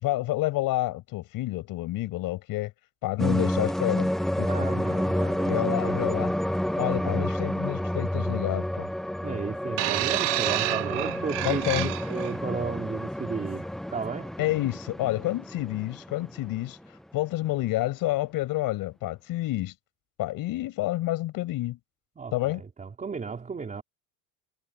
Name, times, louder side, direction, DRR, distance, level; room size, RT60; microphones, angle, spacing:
voice 1, 0.0-2.7 3.0-4.1 4.4-4.5 5.5-6.3 6.8-8.9 11.4-11.9 14.4-16.8 17.1-19.7 20.2-21.8 22.3-22.6, left 17 dB, 55° left, 6.3 m, -29 dB
sound 1, 3.2-16.6, left 1 dB, ahead, 0.4 m, -29 dB
voice 2, 4.5-6.1 7.0-7.2 9.2-14.4 22.2-23.8, right 5 dB, 20° right, 3.8 m, -34 dB
sound 2, 9.8-12.3 13.2-13.4, right 21 dB, 75° right, 1.4 m, -29 dB
cardioid pair, 155°, 40 cm